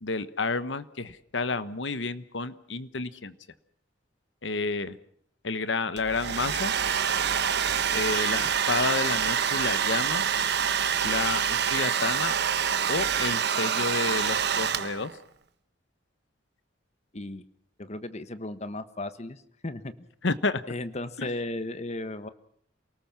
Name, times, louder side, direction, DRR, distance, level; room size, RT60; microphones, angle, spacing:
voice 1, 0.0-3.3 4.4-5.0 5.4-6.7 7.9-10.2 11.0-12.3 12.9-15.1 20.2-20.6 21.2-21.3, left 3 dB, 70° left, 14 dB, 1.2 m, -30 dB
Domestic sounds home sounds, 6.0-15.2, right 8 dB, 60° right, 1.2 m, -26 dB
voice 2, 17.1-17.4 17.8-20.1 20.7-22.3, left 2 dB, 35° left, 12 dB, 1.4 m, -35 dB
28.5 x 19.0 x 5.9 m, 0.63 s
head